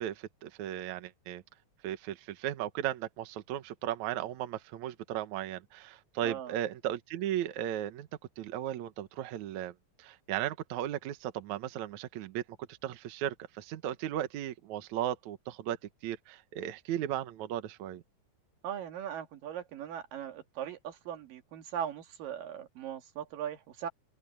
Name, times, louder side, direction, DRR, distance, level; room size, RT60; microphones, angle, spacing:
voice 1, 0.0-1.4 1.8-8.1 8.4-9.7 10.0-12.4 12.7-15.8 16.0-18.0, right 11 dB, 65° right, 2.3 m, -36 dB
voice 2, 6.2-6.6 18.6-23.9, right 9 dB, 85° right, 3.4 m, -39 dB
open air
omnidirectional pair, 3.8 m